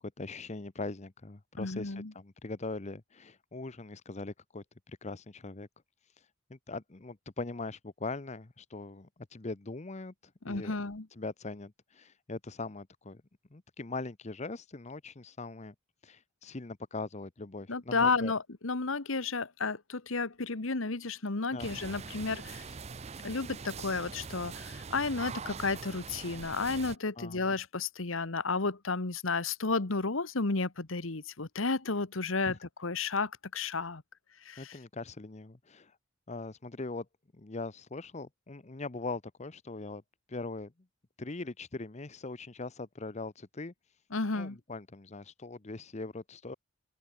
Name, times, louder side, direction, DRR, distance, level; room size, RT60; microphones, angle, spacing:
voice 1, 0.2-5.7 6.2-10.1 10.5-10.7 11.2-13.2 13.5-15.7 16.0-18.3 21.5-21.7 27.2-27.5 32.4-32.6 34.6-36.0 36.3-37.1 37.3-40.0 40.3-40.7 41.2-43.7 44.3-46.5, left 3 dB, 35° left, 0.8 m, -41 dB
voice 2, 1.6-2.1 10.4-11.1 17.7-22.7 23.2-34.0 34.4-34.8 44.1-44.6, left 4 dB, 70° left, 1.4 m, -32 dB
sound 1, 21.6-27.0, right 5 dB, 30° right, 0.5 m, -43 dB
open air
head